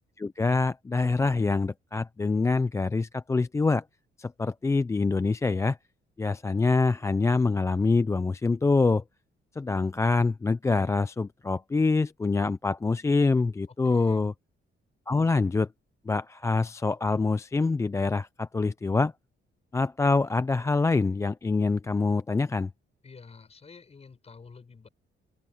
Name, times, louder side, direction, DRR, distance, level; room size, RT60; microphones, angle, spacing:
voice 1, 0.2-3.8 4.2-5.8 6.2-9.0 9.6-14.3 15.1-15.7 16.1-19.1 19.7-22.7, left 3 dB, 15° left, 0.3 m, -25 dB
voice 2, 13.8-14.3 23.0-24.9, left 5 dB, 30° left, 6.8 m, -50 dB
cardioid pair, 135°, 20 cm